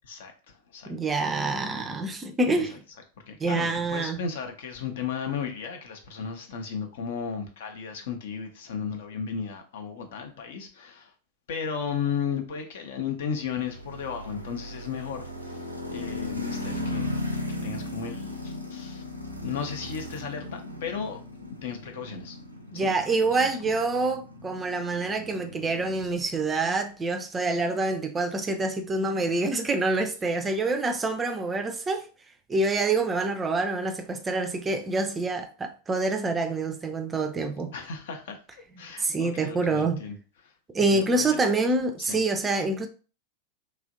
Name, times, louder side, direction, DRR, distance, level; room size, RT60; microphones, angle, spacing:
voice 1, 0.0-1.1 2.5-2.6 3.3-11.1 11.5-17.1 17.5-19.0 19.4-21.2 21.6-22.4 22.7-23.7 37.7-38.4 38.8-40.1 40.4-40.5 40.9-41.5 42.0-42.2, left 6 dB, 55° left, 0.6 m, -35 dB
voice 2, 0.9-2.8 3.4-4.2 22.7-32.1 32.5-37.7 39.0-40.0 40.7-42.9, right 3 dB, 15° right, 0.4 m, -26 dB
sound 1, 13.4-26.5, left 2 dB, 85° right, 0.4 m, -37 dB
3.0 x 2.4 x 2.5 m
figure-of-eight pair, 90°, 0 cm